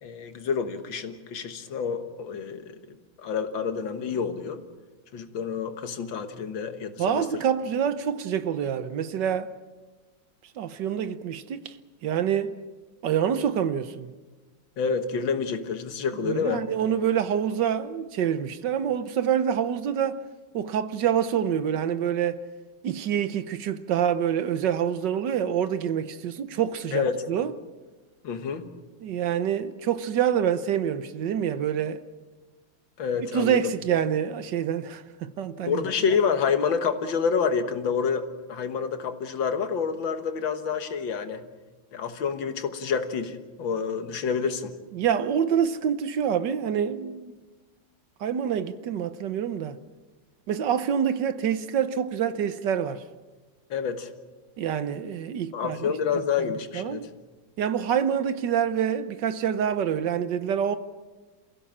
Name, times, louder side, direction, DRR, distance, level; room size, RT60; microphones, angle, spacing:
voice 1, 0.0-2.8 3.2-4.6 5.1-7.3 14.8-16.6 26.9-27.2 28.2-28.7 33.0-33.6 35.6-41.4 41.9-44.7 53.7-54.1 55.5-57.0, left 6 dB, 85° left, 2.2 m, -28 dB
voice 2, 7.0-9.5 10.6-11.8 12.0-12.6 13.0-14.1 16.2-20.2 20.5-22.4 22.8-27.5 29.0-32.0 33.3-35.8 44.9-47.3 48.2-49.8 50.5-53.0 54.6-56.2 56.7-57.1 57.6-60.8, right 8 dB, 70° right, 1.5 m, -26 dB
28.0 x 15.5 x 7.4 m
omnidirectional pair, 2.0 m